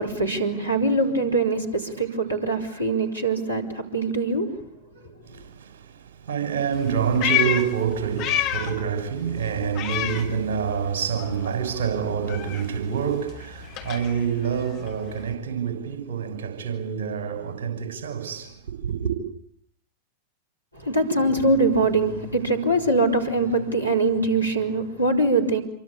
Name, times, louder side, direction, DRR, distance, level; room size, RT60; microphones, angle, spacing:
voice 1, 0.0-4.5 20.8-25.6, right 2 dB, 90° left, 4.8 m, -23 dB
voice 2, 5.2-19.1, right 7 dB, 55° right, 6.4 m, -27 dB
Meow, 6.7-8.9 9.2-10.9 11.2-15.3, left 10 dB, 45° left, 5.4 m, -29 dB
27.5 x 25.0 x 8.4 m
figure-of-eight pair, 90°, 0 cm